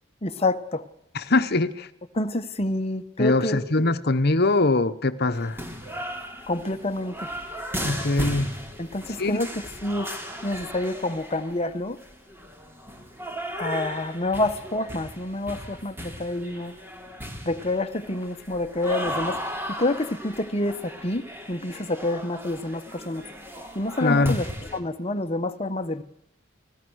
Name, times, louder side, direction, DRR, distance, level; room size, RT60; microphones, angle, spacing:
voice 1, 0.2-0.8 2.2-3.6 6.5-7.3 8.8-10.1 10.4-12.0 13.6-16.7 17.4-19.4 19.7-23.2 23.7-24.5 24.7-26.0, left 2 dB, 30° left, 1.3 m, -28 dB
voice 2, 1.1-1.9 3.2-5.6 7.8-8.5 9.2-9.4 24.0-24.4, left 2 dB, 55° left, 1.2 m, -22 dB
sound 1, 5.3-24.8, equal, 10° right, 3.2 m, -36 dB
29.5 x 20.0 x 6.5 m
head